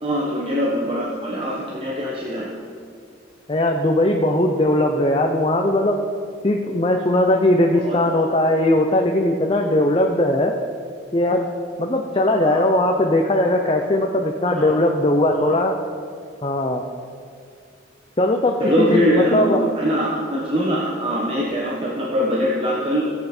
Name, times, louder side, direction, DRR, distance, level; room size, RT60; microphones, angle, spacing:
voice 1, 0.0-2.5 7.8-8.2 12.4-12.6 14.6-14.7 15.4-15.6 18.6-23.0, equal, 30° right, -4 dB, 1.1 m, -22 dB
voice 2, 3.5-6.0 6.4-10.5 11.1-11.5 11.8-15.8 16.4-16.8 18.2-19.6, left 1 dB, 30° left, 2 dB, 0.6 m, -19 dB
15.0 x 8.0 x 4.4 m, 2.2 s
head